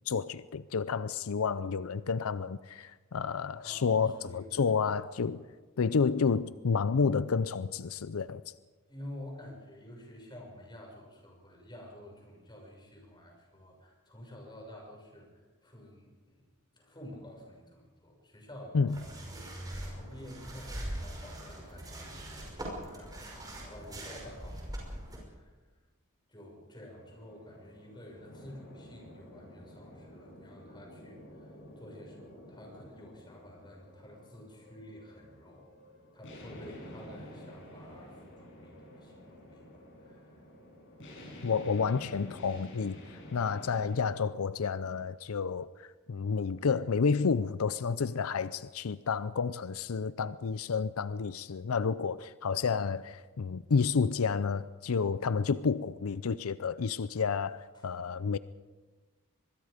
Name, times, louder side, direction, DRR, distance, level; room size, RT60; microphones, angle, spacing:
voice 1, 0.1-5.5 5.8-8.4 18.7-19.0 41.4-43.0 43.3-58.4, left 5 dB, 85° left, 16 dB, 0.5 m, -30 dB
voice 2, 3.6-4.8 5.3-5.4 8.9-16.5 16.7-19.0 19.3-25.6 26.3-35.7 36.1-40.4 57.7-57.9, left 1 dB, 20° left, 1 dB, 6.0 m, -50 dB
sound 1, 18.9-25.2, right 1 dB, 20° right, 5.5 m, -41 dB
sound 2, 26.9-44.0, left 1 dB, 60° left, 8.0 m, -50 dB
24.0 x 21.5 x 5.1 m, 1.3 s
head